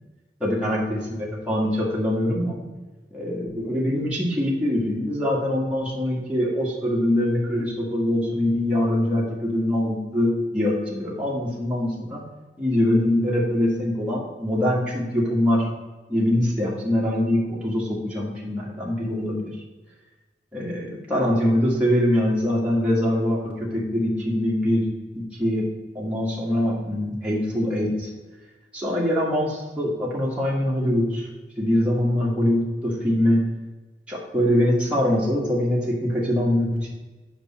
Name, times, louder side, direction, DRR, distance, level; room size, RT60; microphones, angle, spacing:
voice 1, 0.4-2.5 3.1-12.2 12.6-15.7 16.1-19.5 20.5-24.9 25.1-25.7 26.0-28.1 28.7-31.3 31.6-33.4 34.1-36.9, left 1 dB, 5° right, -6 dB, 1.7 m, -23 dB
8.2 x 6.1 x 4.3 m, 1.2 s
head